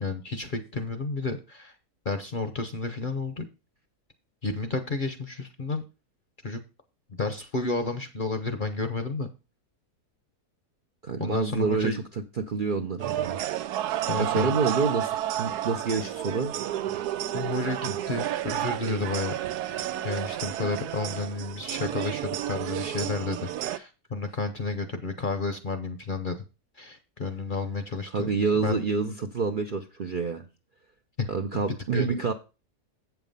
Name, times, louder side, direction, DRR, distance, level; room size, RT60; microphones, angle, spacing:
voice 1, 0.0-1.7 2.0-3.5 4.4-5.8 6.4-6.6 7.2-9.3 11.2-12.0 14.1-14.5 17.3-19.3 20.0-26.4 26.8-28.3 28.6-28.7 31.2-31.3 31.9-32.2, left 3 dB, 40° left, 8 dB, 0.8 m, -31 dB
voice 2, 11.0-12.0 12.4-13.4 14.2-16.5 17.9-18.0 28.1-30.4 31.3-32.3, right 5 dB, 50° right, 4 dB, 0.6 m, -27 dB
sound 1, 13.0-23.8, right 12 dB, 85° right, 1.1 m, -31 dB
8.2 x 5.9 x 5.3 m, 0.30 s
omnidirectional pair, 1.6 m